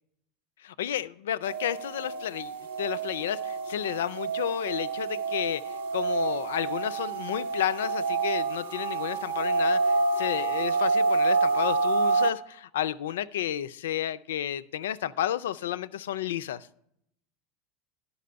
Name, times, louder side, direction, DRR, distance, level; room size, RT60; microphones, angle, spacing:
voice 1, 0.6-2.5 2.8-16.7, left 11 dB, 70° left, 0.3 m, -31 dB
sound 1, 1.5-12.3, right 4 dB, 75° right, 0.6 m, -28 dB
11.5 x 4.1 x 6.6 m
figure-of-eight pair, 80°, 0 cm